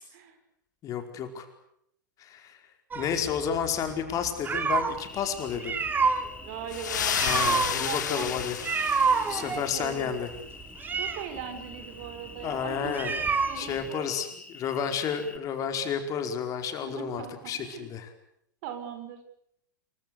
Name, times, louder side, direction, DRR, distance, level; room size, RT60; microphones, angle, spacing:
voice 1, 0.8-1.5 2.2-2.6 2.9-5.8 7.2-8.6 9.3-10.3 12.4-13.2 13.5-18.1, left 7 dB, 35° left, 7 dB, 4.8 m, -31 dB
sound 1, 2.9-5.0 5.5-13.9, right 5 dB, 20° right, 2.9 m, -28 dB
Cricket, 5.0-15.4, left 3 dB, 10° left, 3.6 m, -47 dB
voice 2, 6.4-8.6 9.3-10.1 10.9-13.1 13.5-14.1 16.8-17.9 18.6-19.2, right 8 dB, 50° right, 9 dB, 6.0 m, -40 dB
sound 2, 6.7-9.7, left 9 dB, 65° left, 2.8 m, -31 dB
27.5 x 24.0 x 6.8 m, 0.74 s
figure-of-eight pair, 100°, 10 cm